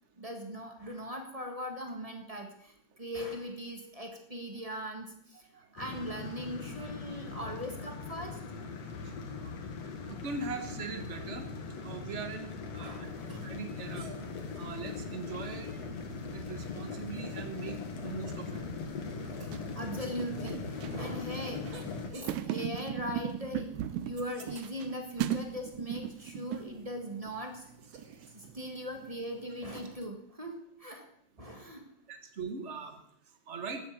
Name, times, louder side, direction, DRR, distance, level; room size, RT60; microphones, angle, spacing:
voice 1, 0.2-8.4 12.8-13.3 19.5-27.6 28.3-31.0 31.4-31.8, equal, 20° right, 4 dB, 1.0 m, -40 dB
sound 1, 5.8-22.1, left 4 dB, 65° left, 2.7 m, -40 dB
voice 2, 9.0-9.5 10.0-11.4 11.8-13.1 13.4-14.1 14.6-15.8 16.3-17.8 18.0-18.6 32.1-32.9 33.5-33.8, right 4 dB, 70° right, 6 dB, 0.6 m, -41 dB
sound 2, 13.1-29.9, right 4 dB, 45° right, 1.3 m, -57 dB
sound 3, 14.8-30.1, right 11 dB, 90° right, 2.2 m, -41 dB
13.0 x 8.5 x 8.1 m, 0.73 s
omnidirectional pair, 3.3 m